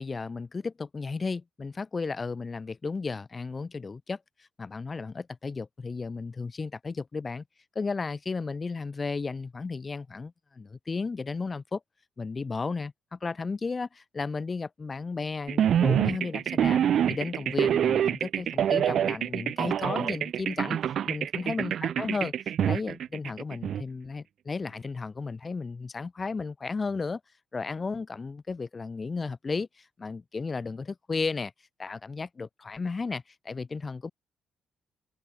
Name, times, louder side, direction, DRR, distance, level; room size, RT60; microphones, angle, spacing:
voice 1, 0.0-4.2 4.6-7.4 7.8-11.8 12.2-16.8 17.1-20.8 21.1-22.3 22.6-27.2 27.5-31.5 31.8-34.1, left 4 dB, 30° left, 0.5 m, -34 dB
sound 1, 15.5-23.8, right 9 dB, 65° right, 0.5 m, -26 dB
cardioid pair, 90°, 0 cm